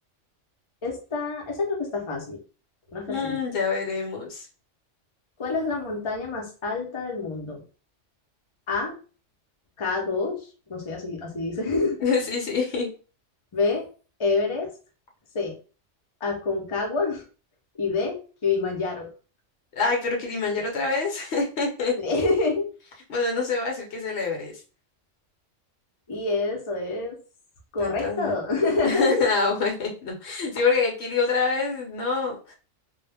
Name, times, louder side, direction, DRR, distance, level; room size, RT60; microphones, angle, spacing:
voice 1, 0.8-2.4 2.9-3.4 5.4-7.6 8.7-9.0 9.8-12.0 13.5-13.9 14.2-14.7 15.3-15.5 16.2-17.2 17.8-19.1 22.0-22.7 26.1-27.2 27.7-29.3, left 3 dB, 35° left, 0 dB, 0.5 m, -27 dB
voice 2, 3.1-4.5 12.0-12.9 19.8-22.0 23.1-24.5 27.8-28.3 28.8-32.5, left 4 dB, 65° left, 0 dB, 0.9 m, -26 dB
2.3 x 2.0 x 3.3 m, 0.36 s
omnidirectional pair, 1.3 m